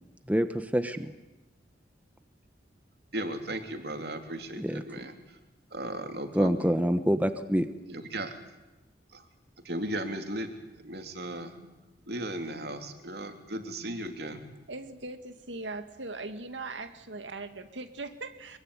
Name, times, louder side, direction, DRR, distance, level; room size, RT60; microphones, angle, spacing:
voice 1, 0.3-1.1 4.6-4.8 6.3-7.7, equal, 10° right, 9 dB, 1.1 m, -26 dB
voice 2, 3.1-5.4 5.7-6.7 7.9-8.3 9.1-9.2 9.6-11.7 12.1-14.5, right 1 dB, 60° right, 6 dB, 3.3 m, -36 dB
voice 3, 14.7-18.6, right 3 dB, 90° right, 8 dB, 2.1 m, -40 dB
24.5 x 23.0 x 9.9 m, 1.0 s
head